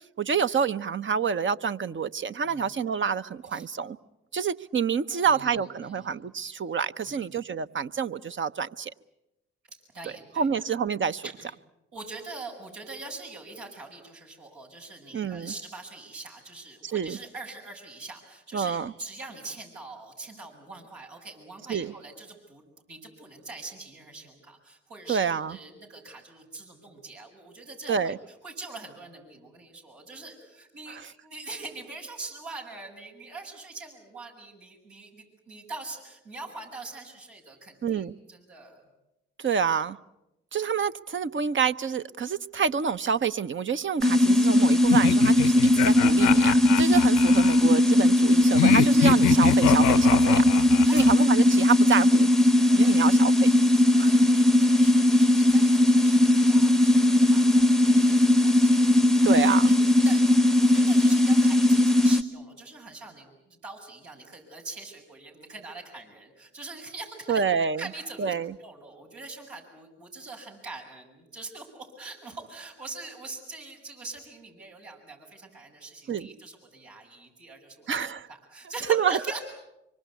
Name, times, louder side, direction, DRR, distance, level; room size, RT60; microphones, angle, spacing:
voice 1, 0.2-4.0 4.3-8.9 10.4-11.2 15.1-15.5 16.8-17.2 18.5-18.9 21.7-21.9 25.1-25.6 27.9-28.2 30.9-31.1 37.8-38.1 39.4-40.0 40.5-50.4 50.9-52.3 52.8-53.5 54.0-54.3 59.2-59.7 67.3-67.8 68.2-68.5 76.1-76.3 77.9-78.3 78.9-79.4, right 6 dB, 40° right, 12 dB, 0.9 m, -27 dB
voice 2, 2.4-2.7 3.5-3.7 5.1-6.1 7.0-7.3 9.7-10.5 11.2-11.5 11.9-22.6 22.9-28.1 28.4-38.8 47.5-47.7 50.9-51.2 52.6-53.2 53.5-59.1 59.6-59.8 60.0-77.9 78.3-79.4, right 3 dB, 80° right, -2 dB, 7.1 m, -43 dB
sound 1, 44.0-62.2, left 1 dB, ahead, 0.9 m, -19 dB
sound 2, 44.9-47.6 48.5-51.1, left 13 dB, 80° left, 0.8 m, -26 dB
25.5 x 24.0 x 8.4 m, 0.94 s
hypercardioid pair, 45°, 29 cm